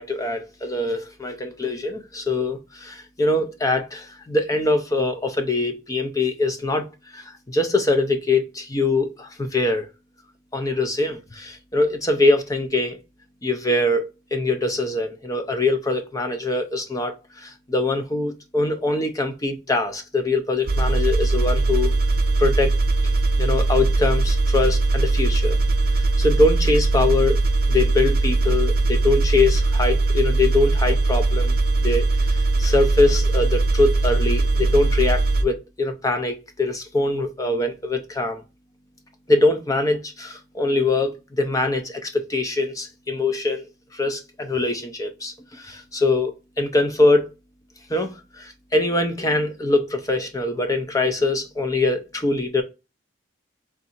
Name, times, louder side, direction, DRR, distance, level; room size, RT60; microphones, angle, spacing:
voice 1, 0.0-6.9 7.1-9.9 10.5-13.0 13.4-21.9 22.4-22.7 23.4-25.6 25.9-27.4 27.7-31.5 31.8-38.4 39.3-43.7 43.9-47.3 47.9-52.6, left 2 dB, 15° left, 0.5 m, -23 dB
sound 1, 20.7-35.4, right 2 dB, 45° right, 0.6 m, -20 dB
3.6 x 2.7 x 4.2 m
head